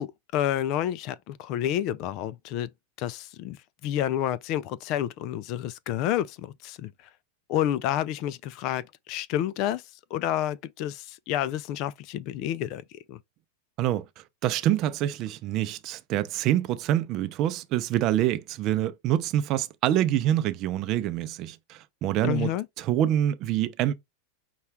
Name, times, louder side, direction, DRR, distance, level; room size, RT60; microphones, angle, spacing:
voice 1, 0.0-2.7 3.0-3.6 3.8-6.9 7.5-9.8 10.1-13.2 22.2-22.7, left 11 dB, 50° left, 0.3 m, -29 dB
voice 2, 14.4-22.5 22.8-23.9, right 12 dB, 40° right, 0.5 m, -26 dB
5.6 x 2.3 x 3.4 m
supercardioid pair, 125°, 0 cm